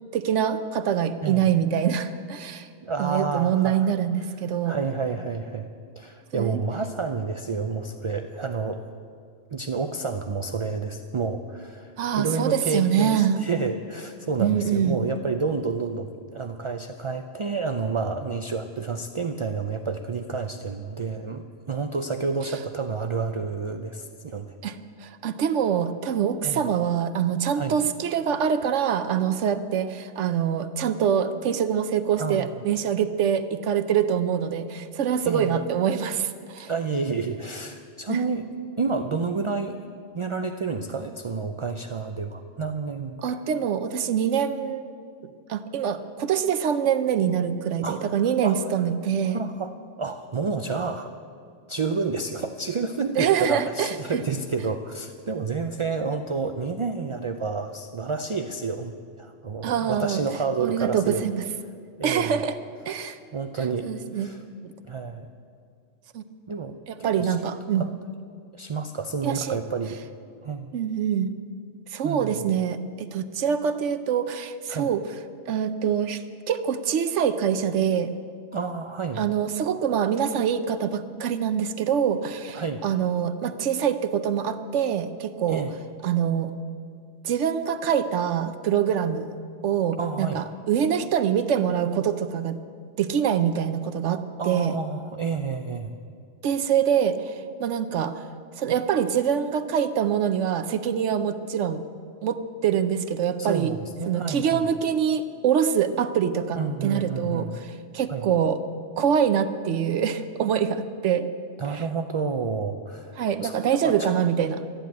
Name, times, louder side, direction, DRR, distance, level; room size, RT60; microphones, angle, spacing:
voice 1, 0.1-2.7 3.0-4.7 6.3-6.7 12.0-13.4 14.4-15.0 24.6-36.7 38.1-38.2 43.2-44.9 45.5-49.4 53.2-54.2 59.6-60.2 60.6-61.4 62.0-62.6 62.9-63.2 63.8-64.3 64.6-64.7 66.1-66.2 66.9-67.9 69.2-69.6 70.7-71.3 71.9-75.0 75.5-78.1 79.2-85.6 86.0-86.5 87.2-89.3 89.6-92.6 93.0-94.8 96.4-98.2 98.6-101.8 102.2-103.7 104.1-108.6 109.0-111.3 111.7-111.8 113.2-114.6, right 8 dB, 75° right, 11 dB, 1.0 m, -25 dB
voice 2, 1.2-1.5 2.8-3.9 4.6-5.7 6.0-8.8 9.5-24.6 26.4-26.6 27.6-27.8 32.2-32.6 35.2-35.5 36.6-38.5 38.8-39.8 40.1-43.2 47.8-48.6 49.2-51.1 51.7-61.2 62.0-62.5 63.3-64.4 64.8-65.3 66.5-66.7 67.0-67.9 68.5-70.0 70.4-70.7 72.0-72.5 74.7-74.9 78.5-79.2 82.5-82.8 85.5-85.7 90.0-90.4 94.4-95.9 103.4-104.7 106.5-107.6 108.1-108.3 111.6-114.1, right 4 dB, 45° right, 7 dB, 0.4 m, -30 dB
13.5 x 10.0 x 9.3 m, 2.2 s
omnidirectional pair, 1.2 m